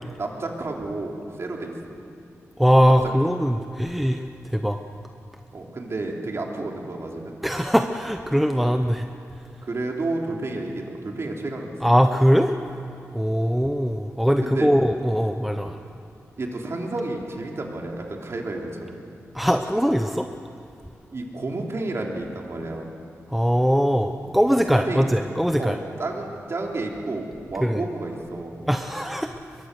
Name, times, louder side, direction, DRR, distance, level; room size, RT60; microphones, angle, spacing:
voice 1, 0.2-1.7 4.5-4.6 5.5-7.3 9.6-11.7 14.4-14.7 15.5-15.6 16.4-18.9 21.1-22.9 24.7-25.1 25.6-28.6, right 2 dB, 55° right, 0 dB, 3.2 m, -31 dB
voice 2, 2.6-4.8 7.4-9.1 11.8-12.5 13.1-15.8 19.3-20.3 23.3-25.8 27.6-27.8 28.7-29.3, equal, ahead, 6 dB, 0.8 m, -21 dB
22.5 x 22.0 x 6.7 m, 2.6 s
wide cardioid pair, 85°, 6 cm